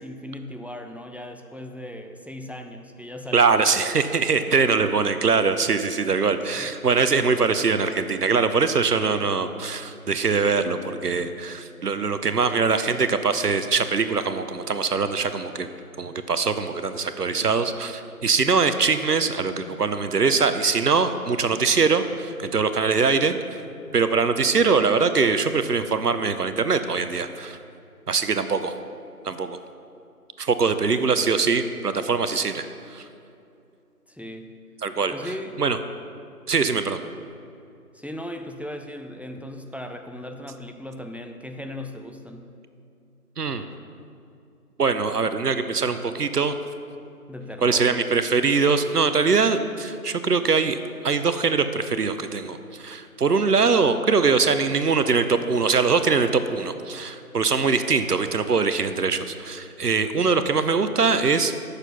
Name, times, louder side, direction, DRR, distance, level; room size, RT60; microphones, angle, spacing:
voice 1, 0.0-3.6 4.6-4.7 6.5-6.7 30.7-31.2 34.1-34.6 35.1-35.6 37.9-42.5 47.3-48.1, left 1 dB, 5° right, 5 dB, 0.4 m, -37 dB
voice 2, 3.3-15.7 16.0-23.6 23.9-27.6 28.1-28.7 29.2-29.6 30.4-33.0 34.8-35.3 35.6-35.8 36.5-37.0 43.4-43.6 44.8-46.6 47.6-50.8 51.0-61.5, right 4 dB, 75° right, 10 dB, 0.7 m, -22 dB
8.2 x 6.6 x 5.6 m, 2.6 s
figure-of-eight pair, 175°, 47 cm